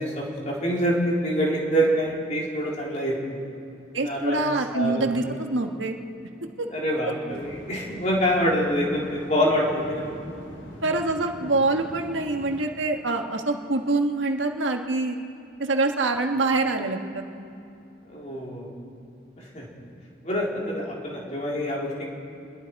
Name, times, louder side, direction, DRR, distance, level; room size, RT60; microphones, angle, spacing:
voice 1, 0.0-3.4 3.9-4.4 4.7-5.1 6.7-10.1 18.1-18.7 19.4-19.7 20.2-22.1, equal, 40° left, -3 dB, 3.8 m, -26 dB
voice 2, 3.9-6.0 6.6-6.7 10.8-15.2 15.6-17.5, right 2 dB, 90° right, 4 dB, 1.6 m, -25 dB
sound 1, 7.3-12.6, equal, 80° left, 3.1 m, -42 dB
26.5 x 21.0 x 4.8 m, 2.6 s
head